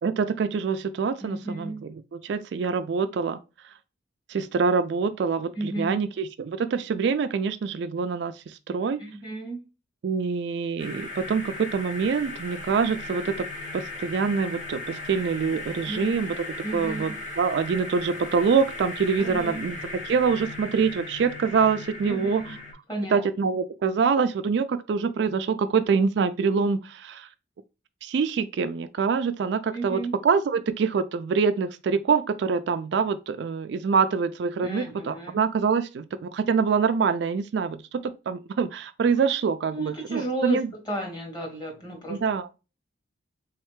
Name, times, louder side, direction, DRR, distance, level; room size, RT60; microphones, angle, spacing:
voice 1, 0.0-3.4 4.3-9.0 10.0-13.5 13.7-16.5 16.7-22.4 23.1-27.3 28.0-40.7 42.1-42.4, right 5 dB, 60° right, 0.3 m, -25 dB
voice 2, 1.2-1.8 5.5-6.1 9.0-9.6 15.9-16.3 16.6-17.1 19.2-19.7 22.0-22.5 22.9-23.2 29.7-30.1 34.6-35.4 39.7-42.2, right 2 dB, 20° left, 1.5 m, -33 dB
sound 1, 10.8-22.7, left 2 dB, 40° left, 1.7 m, -37 dB
3.8 x 3.1 x 3.1 m
head